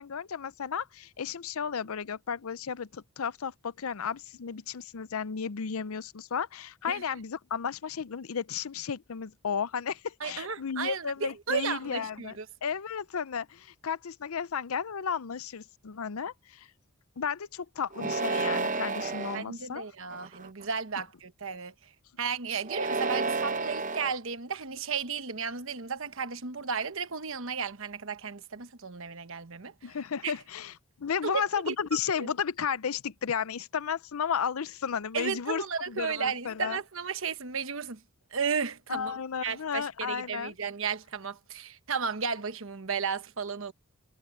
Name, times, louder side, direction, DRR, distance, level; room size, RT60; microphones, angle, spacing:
voice 1, 0.0-12.3 12.6-16.7 17.2-19.9 29.8-30.7 31.0-36.8 38.9-40.5, left 7 dB, 75° left, 0.6 m, -33 dB
voice 2, 10.2-12.4 19.3-21.7 22.2-29.7 30.2-30.3 31.2-31.7 32.2-32.3 35.1-38.0 38.3-43.7, right 6 dB, 65° right, 1.2 m, -34 dB
sound 1, 17.9-19.4 20.1-20.6 22.6-24.1, right 3 dB, 35° right, 0.8 m, -31 dB
head